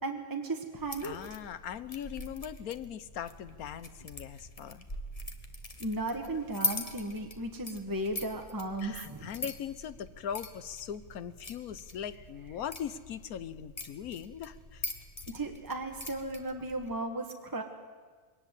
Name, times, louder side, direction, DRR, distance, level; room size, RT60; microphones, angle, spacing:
voice 1, 0.0-1.2 5.8-9.3 15.3-17.6, right 2 dB, 15° right, 3 dB, 1.4 m, -35 dB
sound 1, 0.8-16.9, left 2 dB, 25° left, 1.4 m, -42 dB
voice 2, 1.0-4.9 8.8-14.9, left 9 dB, 90° left, 14 dB, 1.3 m, -40 dB
21.5 x 18.5 x 8.2 m, 1.5 s
omnidirectional pair, 1.5 m